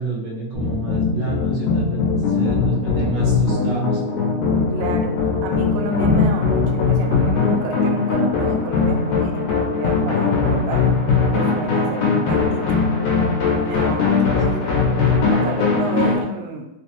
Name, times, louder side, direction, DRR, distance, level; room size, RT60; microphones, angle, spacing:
voice 1, 0.0-4.0, right 3 dB, 70° right, -5 dB, 0.8 m, -29 dB
sound 1, 0.5-16.2, left 4 dB, 90° left, 2.1 m, -20 dB
voice 2, 4.7-10.9 11.3-12.8 13.6-14.7 15.3-16.7, right 4 dB, 85° right, 3 dB, 1.9 m, -31 dB
4.8 x 2.0 x 2.9 m, 0.91 s
omnidirectional pair, 3.3 m